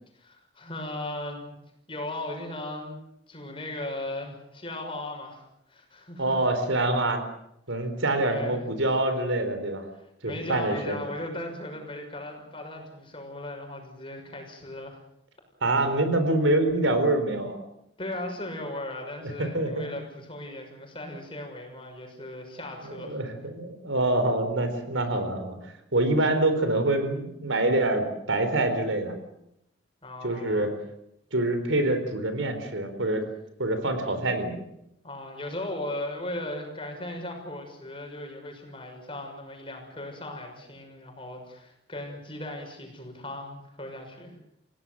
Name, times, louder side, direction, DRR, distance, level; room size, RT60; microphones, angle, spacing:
voice 1, 0.1-1.5 1.9-3.0 3.3-6.4 8.2-8.6 10.2-15.0 18.0-23.2 30.0-30.7 35.0-44.3, left 1 dB, 25° left, 3 dB, 6.1 m, -37 dB
voice 2, 6.2-7.2 7.7-9.9 10.2-11.0 15.6-17.6 19.4-19.9 22.8-29.2 30.2-30.7 31.3-33.3 33.6-34.6, right 2 dB, 85° right, 8 dB, 4.2 m, -26 dB
29.0 x 17.0 x 7.8 m, 0.79 s
head